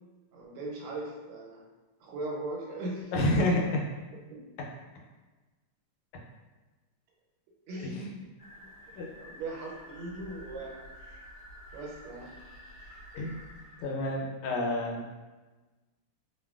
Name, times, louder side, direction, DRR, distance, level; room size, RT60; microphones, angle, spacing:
voice 1, 0.3-1.6 2.0-3.4 4.3-4.5 7.7-8.1 8.6-8.7 9.2-10.9 11.7-12.3, right 2 dB, 80° right, -3 dB, 1.5 m, -39 dB
voice 2, 3.1-3.8 7.8-8.1 9.0-9.1 13.1-13.4 13.8-15.0, left 1 dB, 85° left, -1 dB, 1.5 m, -29 dB
sound 1, 8.4-14.0, equal, 50° left, 1.5 m, -50 dB
3.4 x 2.2 x 2.3 m, 1.2 s
omnidirectional pair, 2.4 m